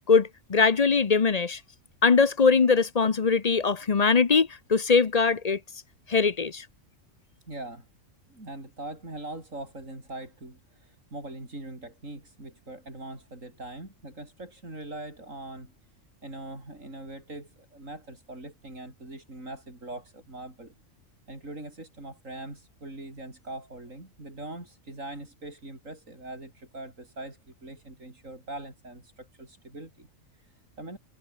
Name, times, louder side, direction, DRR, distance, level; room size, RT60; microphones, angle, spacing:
voice 1, 0.1-1.6 2.0-5.6 6.1-6.6, left 5 dB, 35° left, 0.8 m, -22 dB
voice 2, 7.5-7.9 8.3-20.8 21.3-31.0, right 2 dB, 90° right, 7.1 m, -42 dB
omnidirectional pair, 1.3 m